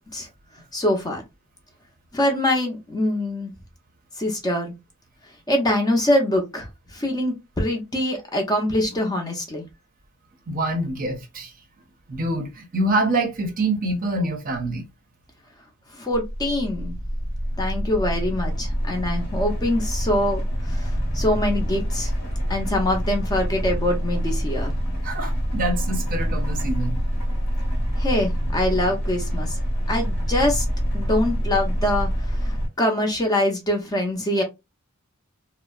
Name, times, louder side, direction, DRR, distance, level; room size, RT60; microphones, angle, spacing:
voice 1, 0.7-1.2 2.1-3.5 4.2-4.7 5.5-6.7 6.9-9.6 16.0-17.0 17.6-22.1 22.5-24.7 28.0-29.6 29.9-30.6 30.9-32.1 32.4-34.4, left 1 dB, 20° left, 0.6 m, -24 dB
voice 2, 10.5-11.5 12.1-14.8 25.0-26.9, right 2 dB, 40° right, 0.6 m, -25 dB
sound 1, 16.1-32.7, equal, 50° left, 0.9 m, -26 dB
2.6 x 2.0 x 2.3 m
head